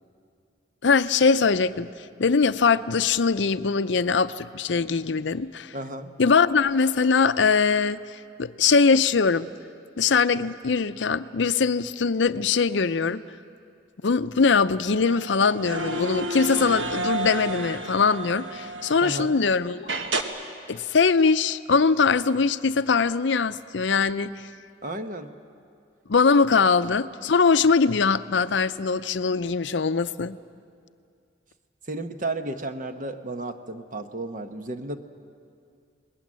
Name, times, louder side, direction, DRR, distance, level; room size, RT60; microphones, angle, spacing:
voice 1, 0.8-1.9 2.2-5.7 6.2-8.0 8.4-9.5 10.0-13.2 14.0-19.9 20.7-24.3 26.1-30.4, left 5 dB, 70° left, 13 dB, 0.6 m, -22 dB
voice 2, 5.7-6.1 19.0-19.3 24.8-25.3 31.9-35.0, right 2 dB, 45° right, 8 dB, 1.1 m, -33 dB
sound 1, 15.0-19.4 19.9-20.2, right 2 dB, 75° right, 1.5 m, -31 dB
28.5 x 20.0 x 7.6 m, 2.3 s
head